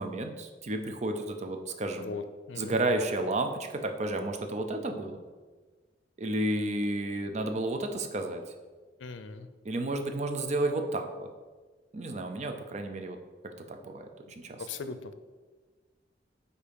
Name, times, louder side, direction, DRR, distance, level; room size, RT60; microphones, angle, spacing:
voice 1, 0.0-2.1 2.6-5.2 6.2-8.4 9.6-11.3 11.9-13.2 13.7-14.6, right 2 dB, 40° right, 5 dB, 0.5 m, -32 dB
voice 2, 2.0-2.8 9.0-9.5 14.6-15.1, left 4 dB, 80° left, 11 dB, 0.5 m, -39 dB
8.4 x 2.8 x 5.2 m, 1.4 s
head